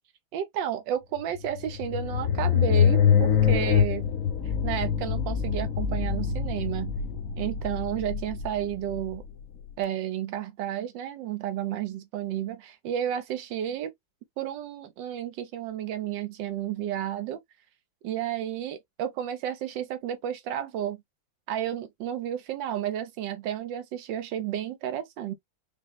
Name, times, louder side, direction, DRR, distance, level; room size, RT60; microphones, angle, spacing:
voice 1, 0.3-4.1 4.6-6.9 7.4-9.2 9.8-13.9 14.4-17.4 18.0-21.0 21.5-25.3, right 10 dB, 75° right, 1.4 m, -32 dB
sound 1, 1.3-9.7, left 7 dB, 65° left, 0.8 m, -25 dB
5.2 x 2.1 x 3.2 m
omnidirectional pair, 2.0 m